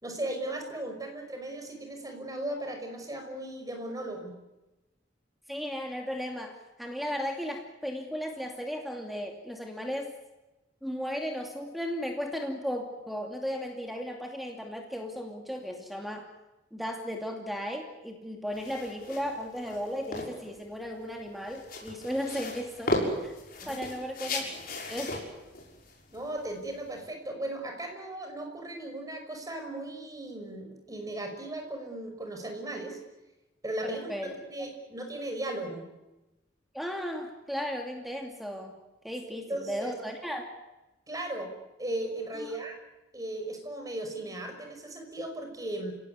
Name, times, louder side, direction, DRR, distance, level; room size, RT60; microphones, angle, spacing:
voice 1, 0.0-4.3 23.6-23.9 24.4-24.5 26.1-33.0 33.6-34.1 34.4-35.9 39.3-39.9 41.1-41.5 41.8-42.8 43.1-45.9, right 1 dB, 20° right, 4 dB, 5.8 m, -37 dB
voice 2, 5.5-10.1 10.8-16.3 16.7-23.3 23.7-25.1 33.8-34.3 36.7-38.8 39.0-40.5 42.4-42.5, equal, ahead, 2 dB, 2.5 m, -35 dB
sound 1, 18.5-27.1, left 1 dB, 50° left, 6.5 m, -36 dB
30.0 x 18.0 x 9.7 m, 1.0 s
head